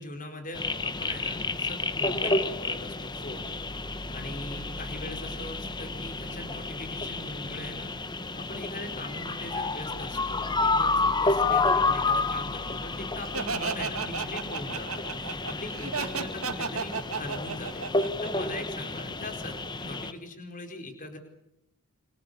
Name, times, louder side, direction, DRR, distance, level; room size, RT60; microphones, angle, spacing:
voice 1, 0.0-3.5 4.1-7.9 8.4-21.2, left 2 dB, 35° left, 5 dB, 4.5 m, -41 dB
sound 1, 0.5-20.1, left 3 dB, 20° left, 1.2 m, -30 dB
Laughter, 13.3-19.0, right 5 dB, 70° right, 2.2 m, -33 dB
28.5 x 25.0 x 6.9 m, 0.84 s
head